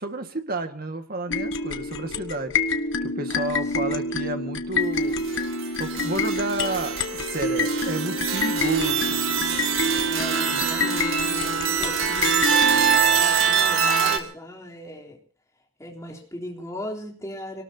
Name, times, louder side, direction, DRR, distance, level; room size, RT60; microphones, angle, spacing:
voice 1, 0.0-2.5 3.0-5.2 5.8-9.2, right 2 dB, 45° right, 6 dB, 1.9 m, -31 dB
sound 1, 1.3-13.0, left 3 dB, 65° left, 1.3 m, -27 dB
voice 2, 3.3-4.0 10.0-12.5 13.1-15.2 15.8-17.6, left 1 dB, 15° left, -1 dB, 3.5 m, -38 dB
sound 2, 5.3-14.2, right 7 dB, 75° right, 2.1 m, -24 dB
26.0 x 19.0 x 2.9 m, 0.43 s
head